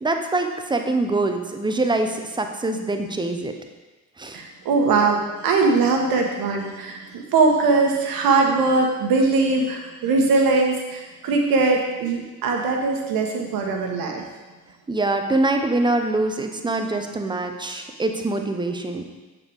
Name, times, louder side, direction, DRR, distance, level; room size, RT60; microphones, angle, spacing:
voice 1, 0.0-3.5 4.2-4.4 14.9-19.0, right 2 dB, 10° right, 5 dB, 0.9 m, -24 dB
voice 2, 4.3-14.2, right 3 dB, 50° right, 2 dB, 1.4 m, -21 dB
8.2 x 7.1 x 3.6 m, 1.2 s
figure-of-eight pair, 50°, 45 cm